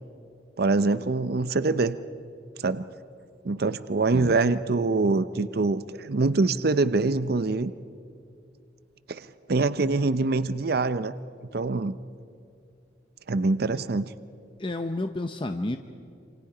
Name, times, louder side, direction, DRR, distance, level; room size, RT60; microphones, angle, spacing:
voice 1, 0.6-2.0 2.6-2.8 3.4-7.7 9.1-11.1 11.5-12.0 13.3-14.1, right 3 dB, 55° right, 13 dB, 0.6 m, -24 dB
voice 2, 14.6-15.8, left 2 dB, 25° left, 7 dB, 0.7 m, -30 dB
27.5 x 27.0 x 5.0 m, 2.4 s
head